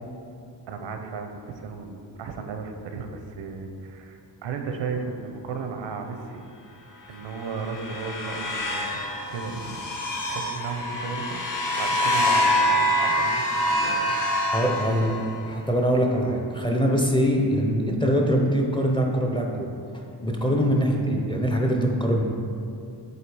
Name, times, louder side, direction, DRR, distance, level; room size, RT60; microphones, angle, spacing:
voice 1, 0.7-6.5 7.1-9.0 9.3-11.5 11.8-14.5 14.9-15.0, right 5 dB, 85° right, 5 dB, 0.7 m, -35 dB
sound 1, 7.2-15.5, left 1 dB, 45° left, 1.0 m, -26 dB
voice 2, 14.5-15.1 15.5-19.7 20.2-22.2, equal, 10° left, 0 dB, 0.5 m, -23 dB
7.9 x 2.8 x 4.7 m, 2.5 s
wide cardioid pair, 145°, 43 cm